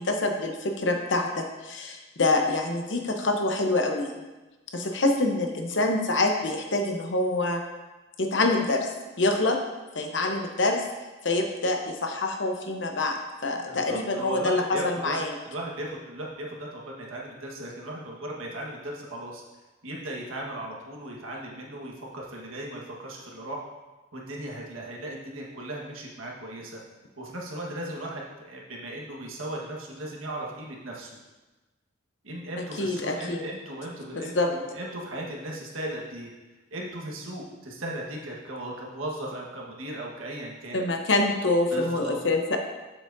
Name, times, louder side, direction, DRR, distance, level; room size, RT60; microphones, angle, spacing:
voice 1, 0.0-4.3 4.7-7.6 8.2-8.9 9.2-9.6 9.9-10.8 11.2-13.2 13.4-15.3 32.8-33.4 34.2-34.5 40.7-42.6, left 2 dB, 60° left, 4 dB, 0.8 m, -26 dB
voice 2, 13.6-19.4 19.8-23.6 24.1-26.8 27.2-31.1 32.2-36.3 36.7-40.8 41.7-42.2, right 1 dB, 85° right, -2 dB, 1.4 m, -37 dB
7.5 x 7.4 x 2.6 m, 1.2 s
head